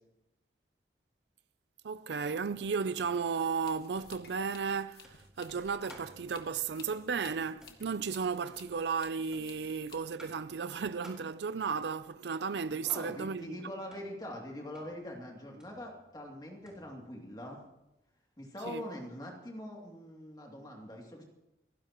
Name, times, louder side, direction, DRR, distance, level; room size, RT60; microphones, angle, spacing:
voice 1, 1.8-13.6 18.7-18.8, right 5 dB, 75° right, 0.5 m, -34 dB
sound 1, 2.9-18.1, right 1 dB, 5° right, 4.0 m, -59 dB
sound 2, 3.4-10.0, left 6 dB, 60° left, 1.6 m, -57 dB
voice 2, 12.8-17.6 18.4-21.2, left 1 dB, 25° left, 2.7 m, -43 dB
28.0 x 16.0 x 3.0 m
head